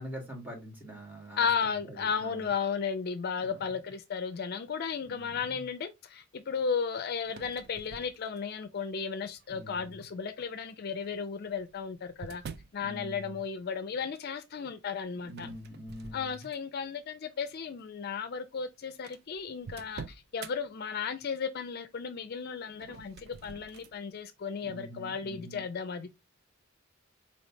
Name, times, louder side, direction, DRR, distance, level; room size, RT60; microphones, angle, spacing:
voice 1, 0.0-2.5 3.4-3.8 5.0-5.6 9.5-10.0 12.8-13.4 15.2-16.5 24.6-25.6, equal, 10° right, 1.5 m, -45 dB
voice 2, 1.4-12.4 12.7-15.5 16.1-26.1, left 6 dB, 50° left, 0.4 m, -34 dB
sound 1, 7.2-8.7 9.4-9.8 10.9-12.8 15.3-16.8 17.3-17.6 18.3-18.4 18.6-18.7 19.0-20.5 22.7-24.0, right 5 dB, 50° right, 0.4 m, -47 dB
4.4 x 3.1 x 2.7 m
head